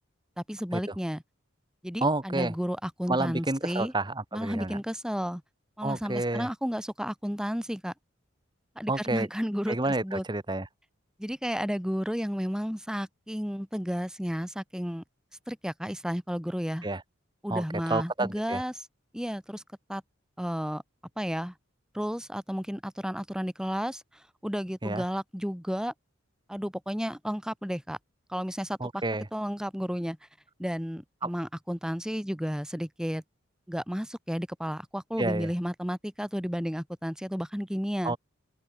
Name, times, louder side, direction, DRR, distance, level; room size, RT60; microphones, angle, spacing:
voice 1, 0.5-1.2 1.8-3.9 4.3-5.4 5.8-7.9 8.7-10.2 11.2-15.0 15.5-16.9 17.4-18.9 19.1-19.6 19.9-20.0 20.4-20.8 21.2-21.5 21.9-24.0 24.4-25.9 26.5-28.0 28.3-29.0 29.3-30.2 30.6-33.2 33.7-38.2, equal, 5° right, 4.8 m, -32 dB
voice 2, 2.0-2.5 3.1-4.8 5.8-6.5 8.9-9.3 9.7-10.7 16.8-17.0 17.5-18.6 24.8-25.0 28.8-29.3 31.2-31.3 35.2-35.5 38.0-38.2, right 2 dB, 20° right, 1.3 m, -29 dB
open air
head